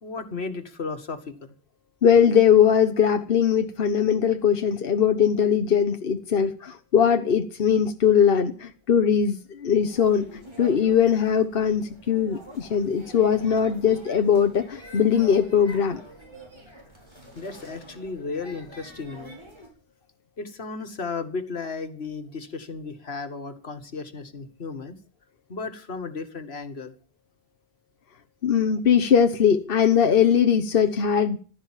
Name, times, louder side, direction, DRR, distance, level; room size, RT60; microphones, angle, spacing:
voice 1, 0.0-1.5 17.4-19.4 20.4-25.0 25.5-26.9, left 4 dB, 85° left, 2.0 m, -34 dB
voice 2, 2.0-10.3 10.6-16.0 28.4-31.4, left 7 dB, 65° left, 1.2 m, -20 dB
sound 1, 9.8-19.7, right 1 dB, 25° right, 5.8 m, -46 dB
15.5 x 12.5 x 7.4 m
omnidirectional pair, 1.0 m